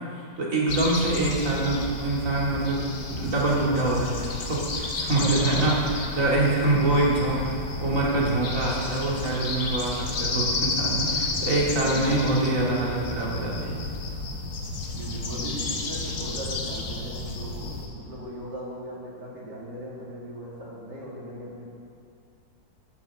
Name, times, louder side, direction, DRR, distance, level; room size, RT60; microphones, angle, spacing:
voice 1, 0.4-5.8 6.2-13.8, right 2 dB, 45° right, -5 dB, 2.7 m, -25 dB
sound 1, 0.7-17.9, left 3 dB, 55° left, 1.6 m, -32 dB
voice 2, 5.2-5.8 6.7-7.1 14.9-21.6, right 1 dB, 65° right, -6 dB, 2.9 m, -38 dB
13.0 x 6.2 x 7.1 m, 2.3 s
omnidirectional pair, 2.0 m